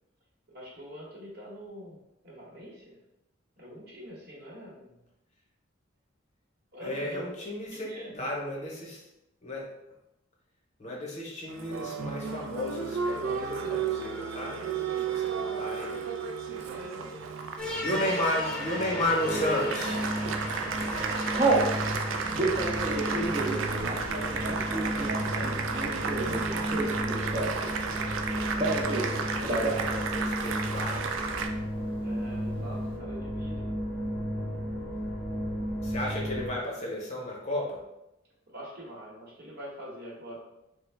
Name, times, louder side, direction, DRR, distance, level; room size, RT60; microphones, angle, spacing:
voice 1, 0.5-2.0 2.2-3.0 3.6-5.0 6.7-7.3 7.7-8.1 14.5-14.6 16.4-17.4 17.9-18.3 21.2-22.6 22.8-23.5 23.9-24.7 25.0-26.7 28.5-30.0 32.0-33.7 38.5-40.4, equal, 55° right, -3 dB, 0.9 m, -45 dB
voice 2, 6.8-9.1 9.4-9.7 10.8-16.0 16.5-16.6 17.8-20.0 28.8-31.2 35.8-37.8, left 1 dB, 35° left, -2 dB, 0.8 m, -33 dB
Applause, 11.5-31.5, right 5 dB, 80° right, 0.3 m, -33 dB
sound 1, 17.6-36.6, equal, 5° left, 0.8 m, -33 dB
Telephone, 19.2-19.7 20.3-20.5 20.8-21.7 22.2-27.7 28.0-29.1 29.4-29.9 30.2-30.3 30.5-31.1, right 2 dB, 25° right, 0.5 m, -30 dB
3.3 x 2.0 x 3.3 m, 0.88 s
head